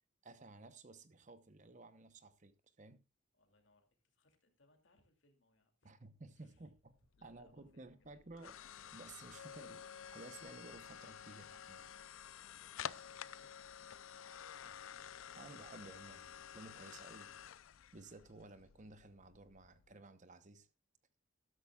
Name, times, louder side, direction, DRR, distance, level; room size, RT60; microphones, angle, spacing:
voice 1, 0.2-3.0 5.8-6.9 7.2-8.5 8.9-11.8 15.3-17.3 17.9-20.7, right 2 dB, 35° right, 0.9 m, -55 dB
voice 2, 3.3-6.0 6.3-6.7 7.2-8.6 12.6-14.8, left 2 dB, 60° left, 2.6 m, -74 dB
sound 1, 6.9-19.9, left 8 dB, 75° left, 0.5 m, -51 dB
13.0 x 12.5 x 2.4 m
head